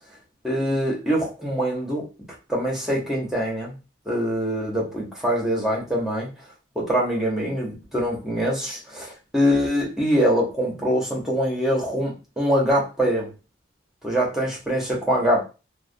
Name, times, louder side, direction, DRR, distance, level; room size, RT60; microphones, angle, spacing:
voice 1, 0.4-2.0 2.5-3.8 4.1-6.3 6.8-13.3 14.0-15.4, equal, 5° right, -3 dB, 0.7 m, -24 dB
2.3 x 2.1 x 2.5 m, 0.31 s
head